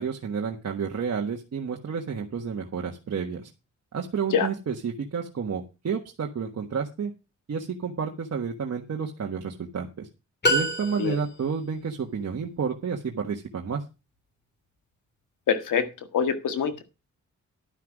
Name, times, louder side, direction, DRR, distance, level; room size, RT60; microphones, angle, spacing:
voice 1, 0.0-3.5 3.9-7.1 7.5-10.1 10.5-13.8, right 6 dB, 55° right, 1 dB, 1.5 m, -30 dB
sound 1, 10.4-11.6, equal, 35° left, 3.7 m, -26 dB
voice 2, 15.5-15.8 16.1-16.8, left 7 dB, 90° left, 9 dB, 1.7 m, -24 dB
11.5 x 5.9 x 6.1 m, 0.28 s
cardioid pair, 70°, 31 cm